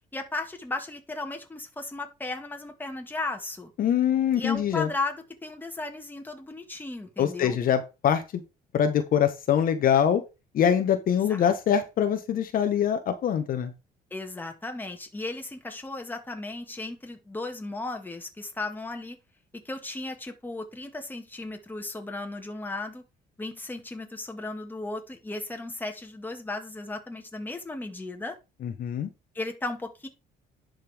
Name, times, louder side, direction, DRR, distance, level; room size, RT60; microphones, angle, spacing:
voice 1, 0.1-3.7 4.4-7.6 11.3-11.5 14.1-19.2 19.5-23.0 23.4-28.4 29.4-30.1, left 2 dB, 10° left, 1.7 m, -35 dB
voice 2, 3.8-4.9 7.2-8.2 8.7-10.2 10.5-13.7 28.6-29.1, left 9 dB, 55° left, 1.2 m, -24 dB
10.5 x 5.4 x 3.5 m
cardioid pair, 110°, 17 cm